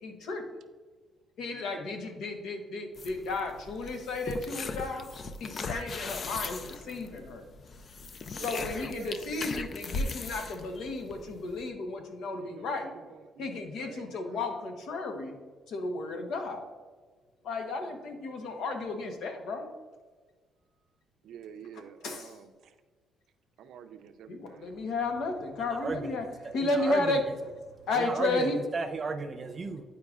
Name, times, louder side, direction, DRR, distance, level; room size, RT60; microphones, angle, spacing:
voice 1, 0.0-0.6 1.4-5.1 5.4-7.5 8.4-12.9 13.4-15.3 15.7-16.7 17.4-19.7 22.0-22.3 24.3-26.3 26.5-27.2 27.9-28.6, left 3 dB, 75° left, 5 dB, 1.0 m, -33 dB
sound 1, 2.9-11.7, left 3 dB, 45° left, 0.4 m, -38 dB
voice 2, 8.4-9.2 12.6-14.6 17.8-18.1 21.2-22.8 23.6-24.8 27.4-27.5, right 7 dB, 75° right, 9 dB, 0.5 m, -48 dB
voice 3, 25.7-27.1 27.9-29.8, right 4 dB, 35° right, 6 dB, 0.6 m, -34 dB
9.4 x 4.6 x 2.4 m, 1.4 s
cardioid pair, 105°, 0 cm